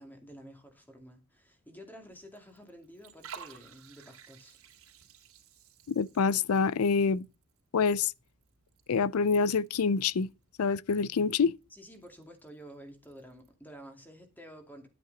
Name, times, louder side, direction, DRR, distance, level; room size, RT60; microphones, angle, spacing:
voice 1, 0.0-4.6 11.7-14.9, equal, 10° left, 2.3 m, -50 dB
Liquid, 2.1-13.5, right 6 dB, 90° right, 2.8 m, -55 dB
voice 2, 5.9-7.3 7.7-8.1 8.9-10.3 10.6-11.5, left 5 dB, 90° left, 0.5 m, -26 dB
11.0 x 9.2 x 4.0 m
head